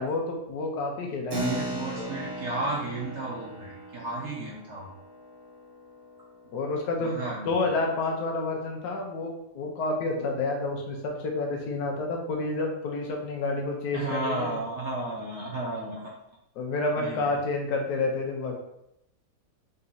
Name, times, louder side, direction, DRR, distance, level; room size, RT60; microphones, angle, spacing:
voice 1, 0.0-1.6 2.0-2.2 6.5-14.6 16.6-18.6, left 3 dB, 75° left, 1 dB, 1.3 m, -29 dB
Keyboard (musical), 1.3-7.3, right 1 dB, 25° right, 0.5 m, -38 dB
voice 2, 1.3-4.9 7.0-7.7 13.9-16.1 17.0-17.3, right 2 dB, 60° right, -3 dB, 0.8 m, -33 dB
4.0 x 2.8 x 3.8 m, 0.81 s
omnidirectional pair, 1.8 m